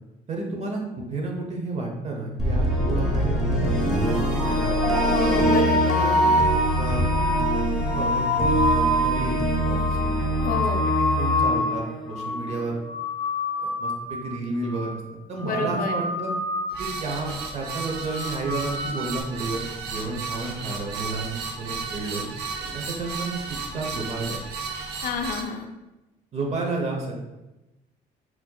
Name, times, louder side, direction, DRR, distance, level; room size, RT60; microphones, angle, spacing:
voice 1, 0.3-3.7 4.0-5.1 5.9-6.4 6.8-7.1 7.8-12.8 13.6-14.9 15.3-16.3 16.8-22.2 22.7-24.4 26.3-27.2, right 3 dB, 40° right, 0 dB, 0.8 m, -32 dB
sound 1, 2.4-12.6, equal, ahead, 0.9 m, -24 dB
sound 2, 4.8-11.8 12.1-12.6 12.8-14.3 14.6-15.0 15.3-16.8 17.1-17.5 17.8-19.2, left 1 dB, 25° left, 0.9 m, -27 dB
voice 2, 5.1-6.1 10.4-10.9 15.4-16.1 25.0-25.7, left 3 dB, 55° left, 4 dB, 0.5 m, -30 dB
sound 3, 16.7-25.4, right 4 dB, 75° right, 0.6 m, -34 dB
4.3 x 2.8 x 2.3 m, 1.0 s
cardioid pair, 110°, 17 cm